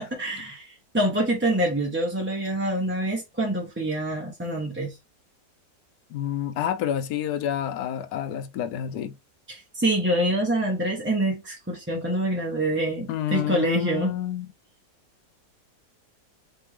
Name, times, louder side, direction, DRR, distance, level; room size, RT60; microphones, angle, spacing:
voice 1, 0.0-4.9 9.5-14.1, right 1 dB, 10° right, 0.7 m, -26 dB
voice 2, 6.1-9.1 13.1-14.5, left 10 dB, 80° left, 1.2 m, -29 dB
4.2 x 3.4 x 3.2 m
omnidirectional pair, 1.7 m